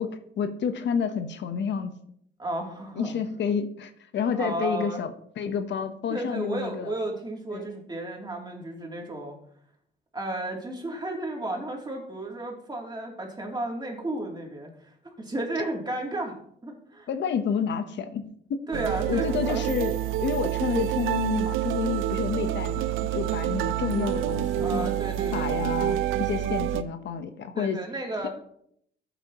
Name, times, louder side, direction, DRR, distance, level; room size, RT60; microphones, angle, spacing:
voice 1, 0.0-1.9 3.0-6.9 7.5-7.7 17.1-18.6 19.1-19.9 20.2-24.9 25.3-27.8 28.2-28.3, left 7 dB, 65° left, 9 dB, 0.9 m, -29 dB
voice 2, 2.4-3.1 4.3-5.0 6.1-9.4 10.1-17.1 18.7-19.6 24.6-25.6 27.5-28.3, right 2 dB, 20° right, 0 dB, 2.8 m, -33 dB
sound 1, 18.7-26.8, right 12 dB, 85° right, 0.6 m, -27 dB
13.5 x 8.3 x 3.0 m, 0.68 s
cardioid pair, 90°, 20 cm